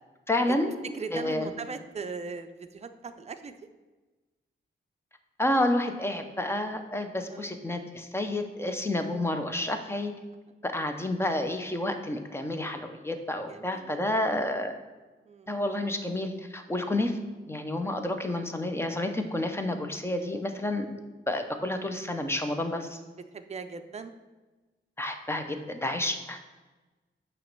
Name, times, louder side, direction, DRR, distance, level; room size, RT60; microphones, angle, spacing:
voice 1, 0.3-0.7 1.1-1.5 5.4-10.1 10.6-14.7 15.5-17.2 17.5-20.9 21.3-23.0 25.0-26.5, left 1 dB, 10° left, 6 dB, 0.6 m, -30 dB
voice 2, 0.8-3.7 7.3-7.6 13.5-14.2 15.2-15.5 20.2-20.3 23.1-24.1, right 5 dB, 30° right, 8 dB, 0.4 m, -39 dB
9.1 x 3.0 x 6.6 m, 1.2 s
wide cardioid pair, 170°, 21 cm